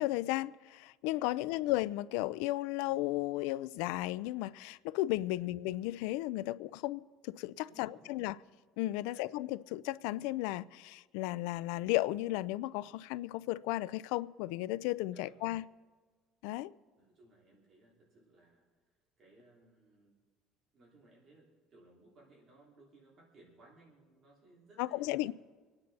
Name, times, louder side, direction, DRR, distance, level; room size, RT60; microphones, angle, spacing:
voice 1, 0.0-8.4 8.8-15.6 16.4-16.7 24.8-25.3, left 17 dB, 85° left, 0.4 m, -34 dB
voice 2, 1.3-1.6 5.3-5.5 7.7-8.2 8.9-9.2 15.1-15.4 17.0-18.6 19.2-20.1 20.7-25.2, right 2 dB, 30° right, 3.0 m, -62 dB
26.0 x 9.8 x 4.1 m
cardioid pair, 165°, 0 cm